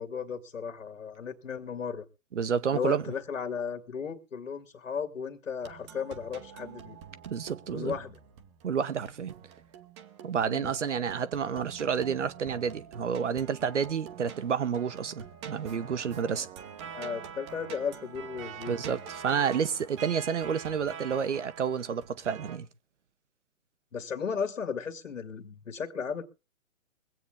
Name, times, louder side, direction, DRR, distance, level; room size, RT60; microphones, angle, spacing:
voice 1, 0.0-2.0 2.7-7.0 7.7-8.2 10.5-10.7 16.9-18.8 23.9-26.2, left 6 dB, 60° left, 2.1 m, -35 dB
voice 2, 2.3-3.0 7.2-7.9 8.6-9.3 10.2-16.5 18.7-22.7, right 7 dB, 55° right, 1.1 m, -30 dB
sound 1, 5.6-22.6, right 8 dB, 20° right, 1.0 m, -45 dB
23.5 x 8.6 x 3.6 m
figure-of-eight pair, 130°, 42 cm